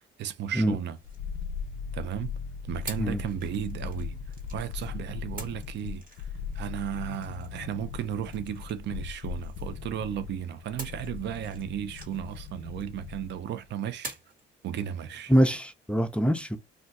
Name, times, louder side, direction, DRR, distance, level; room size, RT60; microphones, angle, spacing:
voice 1, 0.2-1.0 1.9-2.3 2.7-4.2 4.5-6.0 6.5-14.2 14.6-15.3, right 10 dB, 65° right, 0.5 m, -34 dB
sound 1, 0.5-2.0 2.9-4.9 5.4-10.1 10.8-13.3 14.0-14.5, right 2 dB, 45° right, 1.3 m, -47 dB
sound 2, 1.0-13.4 13.7-13.8, left 6 dB, 80° left, 0.4 m, -39 dB
voice 2, 15.3-16.6, equal, 5° left, 0.5 m, -24 dB
2.4 x 2.3 x 3.9 m
cardioid pair, 90°, 20 cm